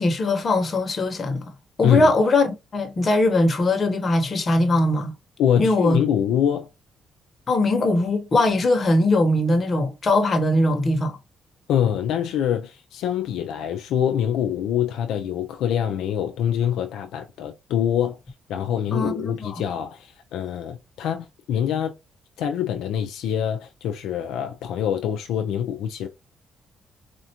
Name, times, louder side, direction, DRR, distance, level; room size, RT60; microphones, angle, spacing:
voice 1, 0.0-1.4 1.8-5.1 5.6-6.0 7.5-11.2 18.9-19.5, left 2 dB, 40° left, 1.1 m, -21 dB
voice 2, 5.4-6.7 11.7-18.2 18.5-22.0 22.4-26.1, left 9 dB, 85° left, 0.4 m, -24 dB
4.3 x 2.5 x 2.9 m
cardioid pair, 90°, 0 cm